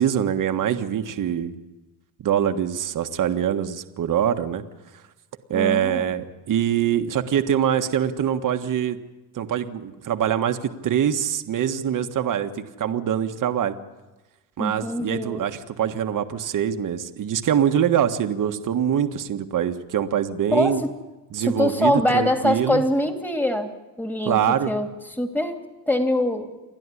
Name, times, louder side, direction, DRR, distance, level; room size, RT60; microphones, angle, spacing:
voice 1, 0.0-1.5 2.2-4.6 5.5-9.0 9.3-13.8 14.6-20.8 21.3-22.8 24.2-24.7, right 9 dB, 50° right, 7 dB, 1.6 m, -24 dB
voice 2, 5.5-6.1 14.6-15.4 20.5-20.9 21.4-23.7 24.0-24.9 25.2-25.6 25.9-26.5, left 1 dB, 5° left, 5 dB, 2.9 m, -23 dB
29.0 x 11.5 x 9.9 m, 1.1 s
cardioid pair, 95°, 40 cm